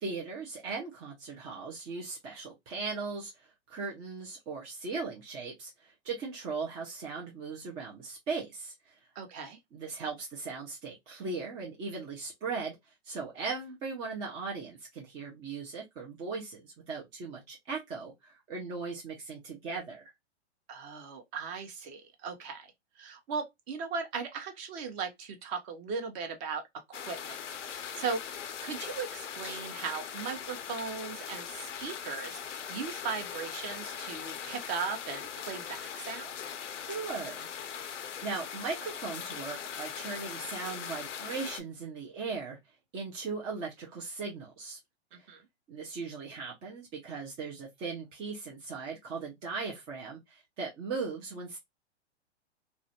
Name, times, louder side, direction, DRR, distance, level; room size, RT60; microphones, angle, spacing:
voice 1, 0.0-9.0 9.7-12.8 13.0-20.1 36.9-37.5 37.8-42.6 42.9-44.8 45.2-45.3 45.7-51.6, right 4 dB, 15° right, 0.3 m, -38 dB
voice 2, 9.2-9.6 20.7-22.7 23.0-26.6 26.9-27.4 27.7-28.2 28.6-36.4 45.1-45.4, right 5 dB, 35° right, 0.7 m, -38 dB
sound 1, 26.9-41.6, left 8 dB, 85° left, 0.5 m, -40 dB
2.4 x 2.1 x 2.6 m
hypercardioid pair, 115°, 35 cm